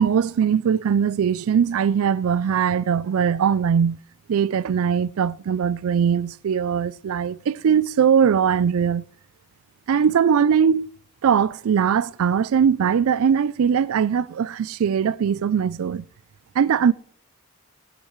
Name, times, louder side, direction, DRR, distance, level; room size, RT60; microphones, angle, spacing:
voice 1, 0.0-4.0 4.3-9.0 9.9-10.9 11.2-16.0 16.6-16.9, right 7 dB, 65° right, 0.3 m, -20 dB
18.5 x 10.0 x 3.1 m
head